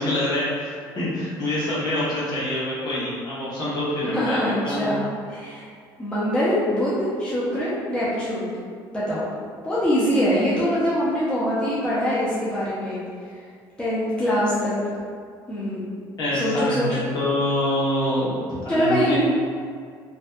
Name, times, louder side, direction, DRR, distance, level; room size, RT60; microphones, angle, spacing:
voice 1, 0.0-4.4 4.6-4.9 16.2-18.4 18.6-19.2, left 1 dB, 45° left, -9 dB, 1.0 m, -25 dB
voice 2, 4.0-5.0 5.3-5.7 6.0-8.5 8.9-9.3 9.6-13.3 13.8-14.7 15.5-15.9 16.4-17.0 18.7-19.2, equal, 10° left, -10 dB, 0.6 m, -23 dB
2.6 x 2.2 x 2.3 m, 2.1 s
cardioid pair, 100°, 9 cm